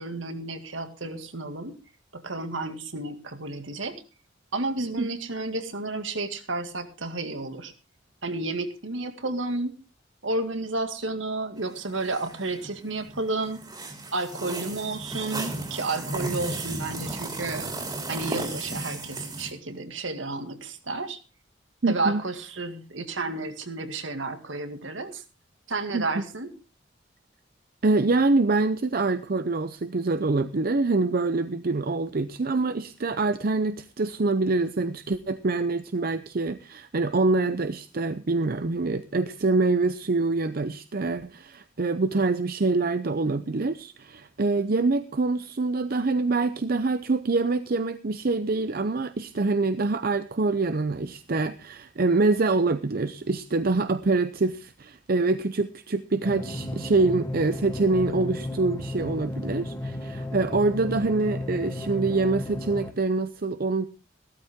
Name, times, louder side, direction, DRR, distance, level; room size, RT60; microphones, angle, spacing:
voice 1, 0.0-1.8 2.1-3.9 4.5-7.7 8.2-9.7 10.2-13.6 14.1-17.7 18.1-21.2 21.9-25.2 25.7-26.5, right 2 dB, 80° right, 7 dB, 2.1 m, -31 dB
sound 1, 11.6-19.5, right 2 dB, 20° right, 2.8 m, -35 dB
voice 2, 21.8-22.2 25.9-26.2 27.8-63.9, right 3 dB, 50° right, 11 dB, 0.6 m, -25 dB
sound 2, 56.2-62.9, left 1 dB, 15° left, 1.5 m, -34 dB
15.5 x 13.5 x 3.6 m, 0.31 s
head